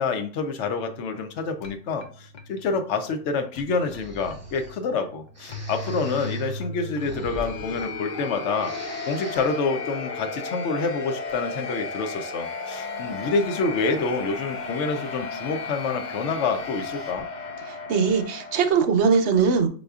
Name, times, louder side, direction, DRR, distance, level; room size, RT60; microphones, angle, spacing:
voice 1, 0.0-8.7 9.1-17.3, left 4 dB, 75° left, 8 dB, 0.9 m, -27 dB
sound 1, 0.6-18.7, left 3 dB, 55° left, 0.5 m, -35 dB
Breathing, 3.8-4.8 5.3-8.3 8.5-9.7, right 1 dB, 15° right, 1.1 m, -42 dB
voice 2, 17.7-19.7, right 6 dB, 70° right, 6 dB, 0.9 m, -21 dB
5.2 x 4.0 x 2.3 m, 0.42 s
omnidirectional pair, 1.2 m